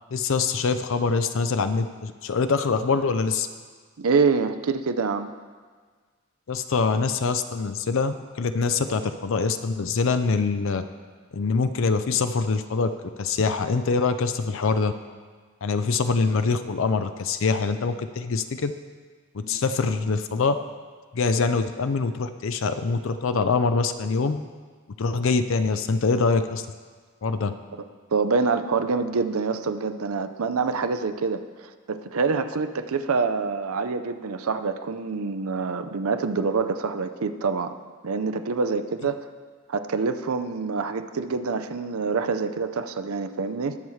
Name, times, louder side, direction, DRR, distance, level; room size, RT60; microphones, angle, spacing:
voice 1, 0.1-3.5 6.5-10.8 11.3-14.9 15.6-18.7 19.3-20.6 21.1-24.4 25.0-26.7 27.2-27.5, left 4 dB, 65° left, 10 dB, 0.5 m, -24 dB
voice 2, 4.0-5.3 19.5-19.6 19.9-20.0 28.1-37.8 38.0-39.2 39.7-43.8, right 4 dB, 80° right, 9 dB, 0.6 m, -26 dB
19.5 x 7.1 x 3.2 m, 1.5 s
head